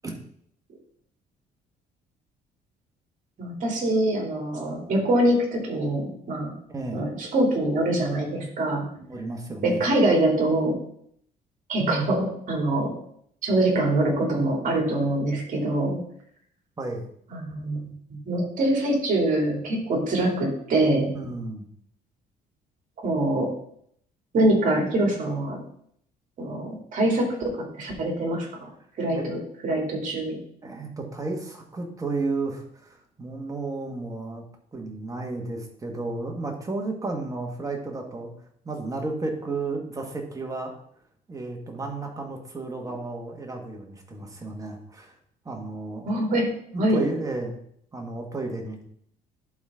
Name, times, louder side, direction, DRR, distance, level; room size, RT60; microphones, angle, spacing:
voice 1, 3.4-6.5 6.9-8.9 9.6-10.8 11.7-12.9 13.4-16.0 17.3-21.1 23.0-23.5 24.3-25.6 26.4-28.7 29.0-30.4 46.0-46.5 46.8-47.1, right 1 dB, 50° right, 0 dB, 3.1 m, -24 dB
voice 2, 6.7-7.1 9.0-9.8 16.8-17.1 21.1-21.7 29.1-29.3 30.6-34.5 34.7-38.3 38.7-40.7 41.3-45.2 45.5-46.4 46.7-47.6 47.9-48.8, right 3 dB, 20° right, 2 dB, 1.7 m, -33 dB
11.5 x 4.2 x 3.8 m, 0.66 s
cardioid pair, 110°, 17 cm